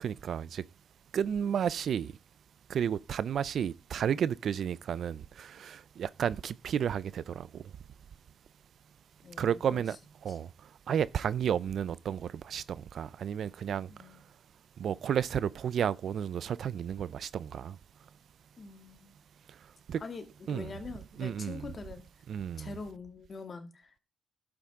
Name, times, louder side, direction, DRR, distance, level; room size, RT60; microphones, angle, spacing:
voice 1, 0.0-0.6 1.1-2.1 2.7-7.6 9.4-10.0 10.2-10.5 10.9-12.6 12.9-13.9 14.8-17.7 19.9-20.0 20.5-20.7 21.2-21.7 22.3-22.8, right 8 dB, 60° right, 0.5 m, -32 dB
voice 2, 9.2-10.0 10.3-10.4 13.9-14.2 18.6-19.2 20.0-22.1 22.6-24.0, left 4 dB, 40° left, 2.3 m, -44 dB
11.5 x 8.8 x 3.7 m
cardioid pair, 90°, 0 cm